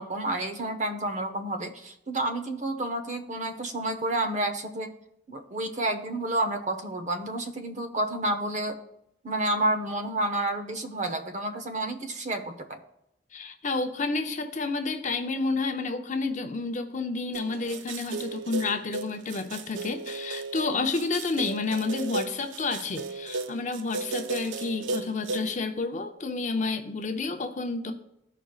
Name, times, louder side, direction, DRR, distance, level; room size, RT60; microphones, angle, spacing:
voice 1, 0.0-4.9 5.3-8.7 9.2-12.8, right 1 dB, 40° right, 6 dB, 0.8 m, -30 dB
voice 2, 13.3-27.9, left 3 dB, 40° left, 6 dB, 0.6 m, -30 dB
sound 1, 17.3-25.5, right 3 dB, 75° right, 0.4 m, -35 dB
14.0 x 5.0 x 2.4 m, 0.80 s
head